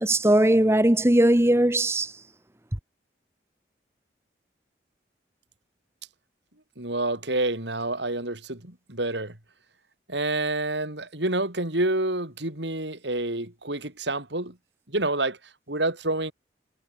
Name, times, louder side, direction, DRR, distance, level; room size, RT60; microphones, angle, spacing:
voice 1, 0.0-2.1, right 1 dB, 15° right, 1.0 m, -19 dB
voice 2, 6.8-9.4 10.1-14.6 14.9-15.4 15.7-16.3, right 2 dB, 75° right, 5.1 m, -28 dB
head